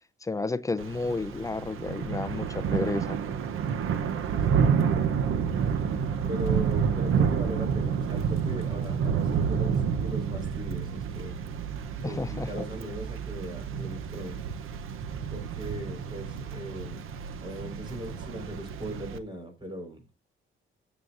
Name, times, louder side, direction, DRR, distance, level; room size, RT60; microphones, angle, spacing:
voice 1, 0.2-3.2 12.0-12.7, left 3 dB, 15° left, 0.6 m, -31 dB
Thunder / Rain, 0.8-19.2, right 7 dB, 80° right, 0.9 m, -29 dB
voice 2, 6.3-11.3 12.0-14.5 15.3-17.1 17.4-20.0, right 1 dB, 20° right, 4.6 m, -39 dB
16.0 x 7.2 x 2.6 m
cardioid pair, 130°, 21 cm